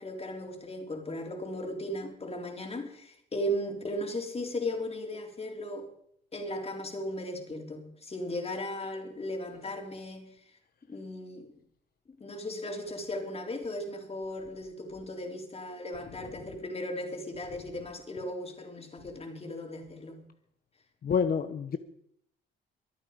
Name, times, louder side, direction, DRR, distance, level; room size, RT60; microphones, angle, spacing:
voice 1, 0.0-5.9 6.3-10.3 10.9-11.5 12.2-20.2, left 1 dB, 30° left, 3 dB, 3.8 m, -36 dB
voice 2, 21.0-21.8, left 6 dB, 50° left, 9 dB, 1.0 m, -27 dB
24.0 x 8.8 x 5.2 m, 0.70 s
cardioid pair, 90°, 20 cm